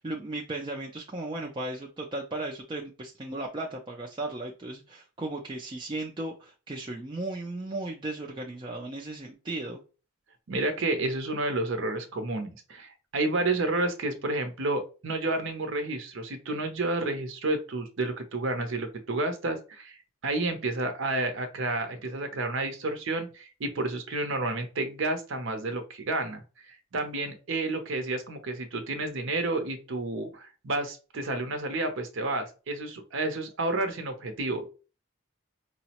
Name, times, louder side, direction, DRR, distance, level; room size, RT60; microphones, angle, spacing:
voice 1, 0.0-9.8, right 2 dB, 20° right, 0 dB, 0.4 m, -36 dB
voice 2, 10.5-34.7, right 2 dB, 65° right, 6 dB, 0.6 m, -30 dB
4.7 x 2.0 x 2.8 m, 0.33 s
head